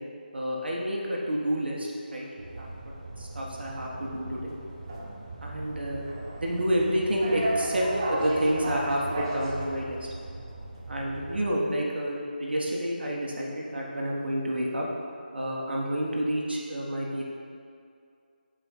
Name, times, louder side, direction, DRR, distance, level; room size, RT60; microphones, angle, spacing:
voice 1, 0.3-4.5 5.4-6.0 6.4-10.0 10.9-14.8 15.3-17.2, equal, 80° right, -2 dB, 1.4 m, -29 dB
sound 1, 2.4-11.5, right 1 dB, 25° right, 0.8 m, -35 dB
8.2 x 4.9 x 4.4 m, 2.4 s
figure-of-eight pair, 175°, 5 cm